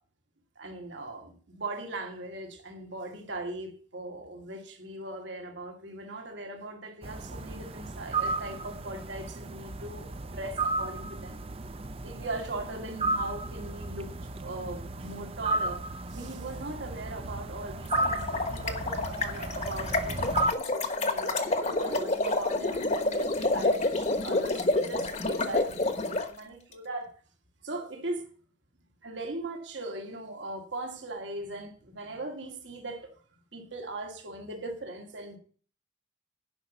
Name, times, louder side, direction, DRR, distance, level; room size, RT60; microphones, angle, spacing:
voice 1, 0.6-11.4 12.0-14.1 14.4-15.8 16.1-27.1 27.6-28.3 29.0-33.1 33.5-35.4, right 2 dB, 70° right, 2.1 m, -39 dB
sound 1, 7.0-20.5, right 2 dB, 30° right, 0.6 m, -34 dB
sound 2, 17.8-26.3, left 2 dB, 40° left, 1.2 m, -28 dB
10.5 x 5.6 x 7.1 m
head